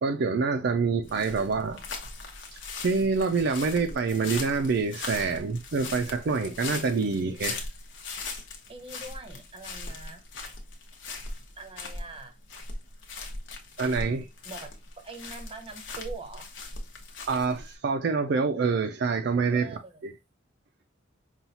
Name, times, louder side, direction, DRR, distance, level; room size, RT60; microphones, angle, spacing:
voice 1, 0.0-1.8 2.5-7.6 13.8-14.3 17.3-19.7 20.0-20.1, right 4 dB, 60° right, 0.4 m, -26 dB
sound 1, 1.0-17.7, left 3 dB, 70° left, 0.9 m, -39 dB
voice 2, 8.7-10.2 11.6-12.4 14.4-14.7 15.0-16.5 19.5-20.0, right 3 dB, 30° right, 0.7 m, -43 dB
5.4 x 2.4 x 2.8 m
head